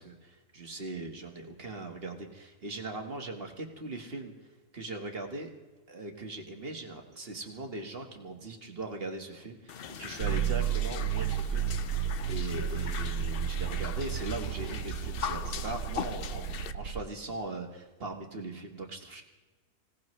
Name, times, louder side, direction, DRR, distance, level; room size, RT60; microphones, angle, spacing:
voice 1, 0.0-5.5 5.9-11.7 12.3-19.2, right 2 dB, 40° right, 3 dB, 1.7 m, -40 dB
sound 1, 9.7-16.7, left 8 dB, 60° left, 0.6 m, -40 dB
sound 2, 10.2-17.1, right 9 dB, 85° right, 1.2 m, -32 dB
25.5 x 17.5 x 3.2 m, 1.2 s
omnidirectional pair, 1.6 m